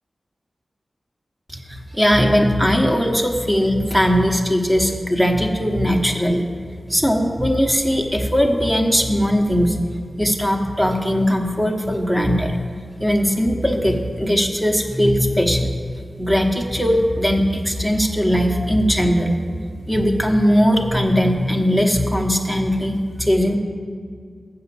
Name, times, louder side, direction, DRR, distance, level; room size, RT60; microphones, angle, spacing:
voice 1, 1.5-6.4 6.9-9.8 10.2-12.6 13.0-15.8 16.2-19.3 19.9-23.6, equal, 10° right, 2 dB, 1.1 m, -19 dB
7.8 x 5.9 x 7.0 m, 2.1 s
cardioid pair, 50°, 0 cm